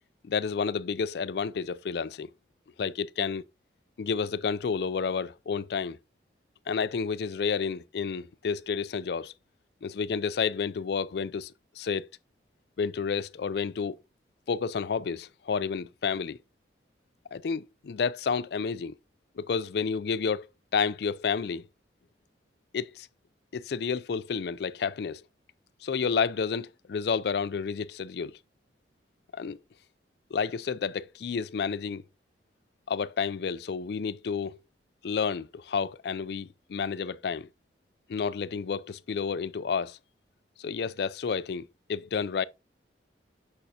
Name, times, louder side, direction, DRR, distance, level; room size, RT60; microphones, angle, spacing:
voice 1, 0.2-2.3 2.8-3.4 4.0-6.0 6.7-9.3 9.8-12.1 12.8-14.0 14.5-16.4 17.3-19.0 19.4-21.7 22.7-23.1 23.5-25.2 25.8-28.4 29.3-29.6 30.3-32.0 32.9-34.6 35.0-37.5 38.1-40.0 40.6-42.4, left 6 dB, 60° left, 0.4 m, -30 dB
6.7 x 6.3 x 2.7 m
head